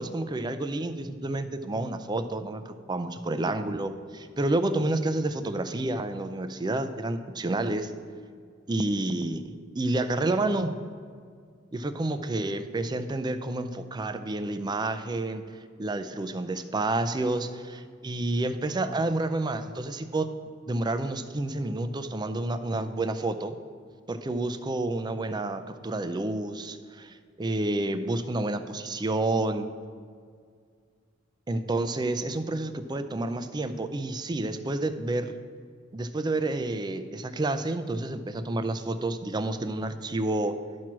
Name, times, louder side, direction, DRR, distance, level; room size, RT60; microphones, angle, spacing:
voice 1, 0.0-7.9 8.7-9.4 9.8-10.7 11.7-15.4 15.8-20.3 20.7-23.6 24.1-29.7 31.5-35.3 35.9-40.6, right 2 dB, 20° right, 10 dB, 0.4 m, -29 dB
11.5 x 4.6 x 6.0 m, 2.1 s
head